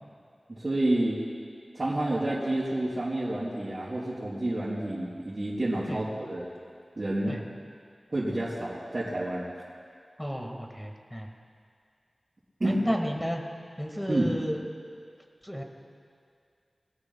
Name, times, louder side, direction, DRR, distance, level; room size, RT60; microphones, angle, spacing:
voice 1, 0.5-1.2 1.7-6.5 7.0-7.3 8.1-9.5 12.6-12.8 14.1-14.3, right 1 dB, 40° right, -11 dB, 4.2 m, -29 dB
voice 2, 10.2-11.3 12.6-13.4 13.8-14.6 15.4-15.6, equal, 5° left, 2 dB, 1.7 m, -32 dB
23.5 x 17.5 x 2.3 m, 2.2 s
wide cardioid pair, 70°, 0 cm